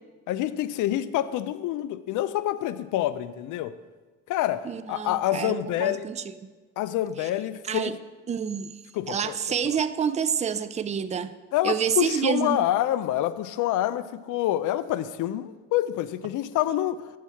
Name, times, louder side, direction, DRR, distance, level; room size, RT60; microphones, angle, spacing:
voice 1, 0.3-3.7 4.3-6.1 6.8-7.9 8.9-9.3 9.6-9.8 11.5-17.0, left 13 dB, 85° left, 14 dB, 0.5 m, -27 dB
voice 2, 4.6-6.5 7.2-7.3 7.7-7.9 8.3-8.7 9.1-11.3 11.6-12.6, right 7 dB, 25° right, 13 dB, 0.4 m, -28 dB
8.2 x 4.7 x 5.7 m, 1.3 s
cardioid pair, 90°, 30 cm